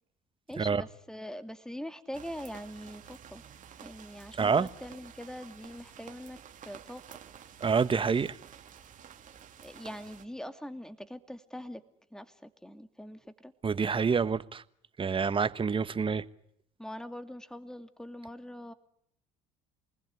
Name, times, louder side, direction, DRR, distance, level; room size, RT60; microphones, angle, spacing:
voice 1, 0.5-3.4 3.8-7.0 9.6-11.8 12.1-13.5 16.8-18.7, equal, 5° left, 2.6 m, -43 dB
sound 1, 2.1-10.2, right 8 dB, 50° right, 2.6 m, -51 dB
voice 2, 4.4-4.7 7.6-8.4 13.6-14.6 15.0-16.2, right 5 dB, 30° right, 1.4 m, -27 dB
29.0 x 20.5 x 9.8 m
hypercardioid pair, 70°, 18 cm